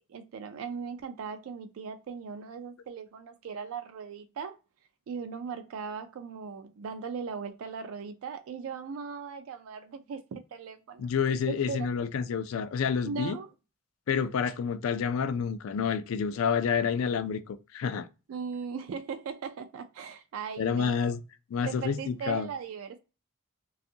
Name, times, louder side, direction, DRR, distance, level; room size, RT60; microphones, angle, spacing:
voice 1, 0.1-4.5 5.1-11.1 11.5-11.9 13.0-13.5 18.3-21.2 21.6-23.0, right 6 dB, 85° right, 0.3 m, -38 dB
voice 2, 11.0-13.4 14.1-18.1 20.6-21.2 21.5-22.5, left 6 dB, 85° left, 0.3 m, -29 dB
2.5 x 2.4 x 2.6 m
head